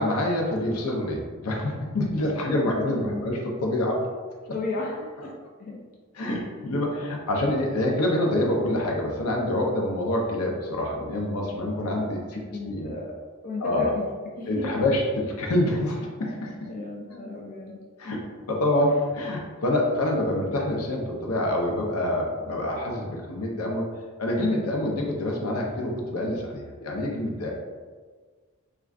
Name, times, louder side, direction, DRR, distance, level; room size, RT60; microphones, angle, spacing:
voice 1, 0.0-4.0 6.1-12.9 13.6-13.9 14.5-16.7 18.0-18.2 18.5-23.9 24.2-27.5, left 1 dB, 85° left, 0 dB, 0.5 m, -26 dB
voice 2, 2.8-3.3 4.5-5.3 5.6-5.8 12.3-13.1 13.4-14.1 14.4-14.8 16.7-17.8 18.8-18.9, left 2 dB, 40° left, -2 dB, 0.3 m, -34 dB
2.3 x 2.2 x 3.4 m, 1.5 s
head